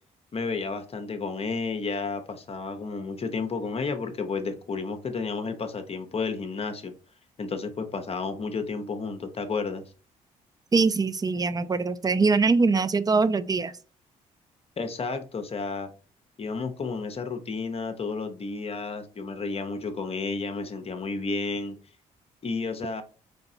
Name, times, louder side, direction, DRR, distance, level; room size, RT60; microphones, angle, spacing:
voice 1, 0.3-6.9 7.4-9.8 14.8-15.9 16.4-21.8 22.4-23.0, left 4 dB, 40° left, 0.7 m, -31 dB
voice 2, 10.7-13.7, right 4 dB, 25° right, 0.4 m, -23 dB
3.8 x 3.4 x 2.7 m
supercardioid pair, 55°, 16 cm